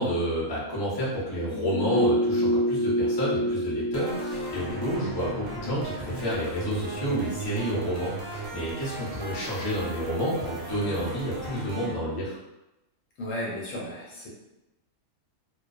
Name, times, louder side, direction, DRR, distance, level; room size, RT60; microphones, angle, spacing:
voice 1, 0.0-12.4, equal, 25° left, -7 dB, 0.6 m, -30 dB
sound 1, 1.5-6.7 7.0-7.1, equal, 10° right, 0.7 m, -28 dB
sound 2, 3.9-11.9, right 2 dB, 85° right, 1.1 m, -37 dB
voice 2, 13.2-14.3, left 1 dB, 70° left, -4 dB, 1.0 m, -34 dB
2.3 x 2.2 x 2.4 m, 0.96 s
omnidirectional pair, 1.5 m